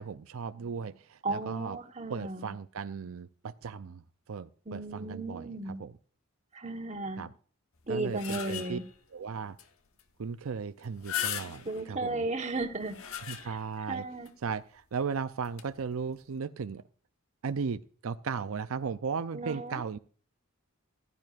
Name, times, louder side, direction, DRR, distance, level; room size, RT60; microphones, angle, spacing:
voice 1, 0.0-1.8 2.1-6.0 7.2-7.3 7.9-8.8 9.1-9.6 10.2-12.3 13.3-14.1 14.4-16.8 17.4-20.0, right 5 dB, 85° right, 0.5 m, -36 dB
voice 2, 1.2-2.5 4.7-5.8 6.5-7.2 7.9-8.8 11.6-12.9 13.9-14.3 19.3-19.8, right 2 dB, 35° right, 1.2 m, -35 dB
sound 1, 7.8-9.0 9.6-9.7 10.0-10.1 10.8-11.9 12.6-13.8 14.3-14.4 15.4-15.6, left 10 dB, 85° left, 1.1 m, -38 dB
15.5 x 12.5 x 2.5 m
head